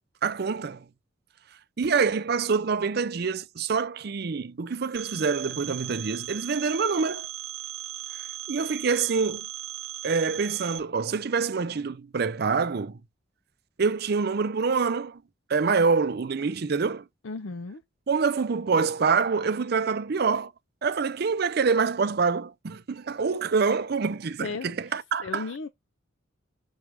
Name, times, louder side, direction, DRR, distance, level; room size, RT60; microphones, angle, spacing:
voice 1, 0.2-0.8 1.8-7.3 8.5-9.5 10.0-13.0 13.8-15.2 15.5-17.0 18.1-20.5 20.8-25.5, right 5 dB, 55° right, 0.5 m, -26 dB
Telephone, 5.0-10.8, right 13 dB, 90° right, 1.0 m, -37 dB
voice 2, 17.2-17.8 24.4-25.7, left 4 dB, 75° left, 0.6 m, -36 dB
6.2 x 3.3 x 4.7 m
head